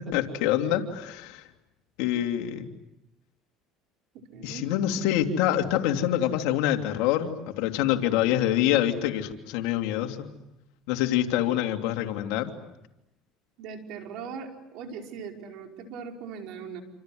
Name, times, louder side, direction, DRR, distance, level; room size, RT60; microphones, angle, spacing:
voice 1, 0.0-1.5 2.0-2.7 4.4-10.3 10.9-12.5, left 12 dB, 80° left, 4 dB, 3.0 m, -26 dB
voice 2, 4.3-4.7 13.6-16.8, right 6 dB, 65° right, 2 dB, 5.1 m, -39 dB
28.5 x 27.0 x 7.9 m, 0.88 s
supercardioid pair, 110°, 0 cm